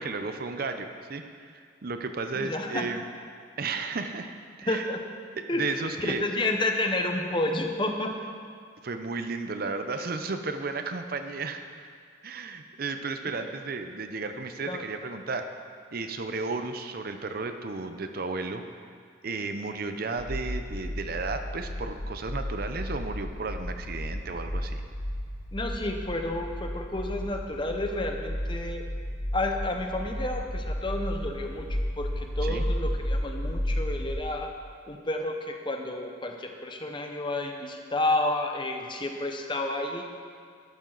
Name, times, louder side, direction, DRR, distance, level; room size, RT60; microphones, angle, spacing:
voice 1, 0.0-3.0 3.6-4.3 4.6-4.9 5.5-6.3 8.8-11.9 12.2-15.5 15.9-18.6 19.2-24.8 32.4-32.7, right 3 dB, 50° right, 7 dB, 0.6 m, -33 dB
voice 2, 2.4-2.9 4.7-5.0 5.5-8.2 13.4-13.5 14.7-14.9 25.5-28.8 29.3-34.5 34.9-40.1, left 2 dB, 25° left, 3 dB, 0.9 m, -30 dB
sound 1, 20.2-34.1, equal, 75° left, 1.6 m, -33 dB
12.5 x 12.0 x 4.0 m, 2.1 s
head